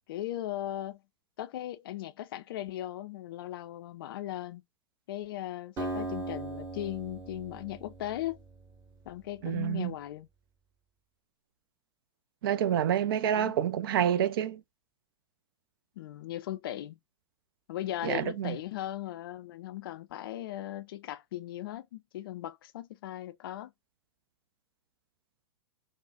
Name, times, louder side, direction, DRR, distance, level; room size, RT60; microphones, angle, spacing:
voice 1, 0.1-1.0 1.4-4.6 5.1-8.4 9.1-10.3 13.3-13.6 16.0-17.0 17.7-23.7, left 13 dB, 45° left, 0.4 m, -38 dB
Acoustic guitar, 5.8-9.3, right 2 dB, 20° right, 1.3 m, -39 dB
voice 2, 9.4-9.9 12.4-14.6 18.0-18.6, right 10 dB, 50° right, 0.4 m, -28 dB
3.8 x 2.1 x 2.4 m
figure-of-eight pair, 100°, 16 cm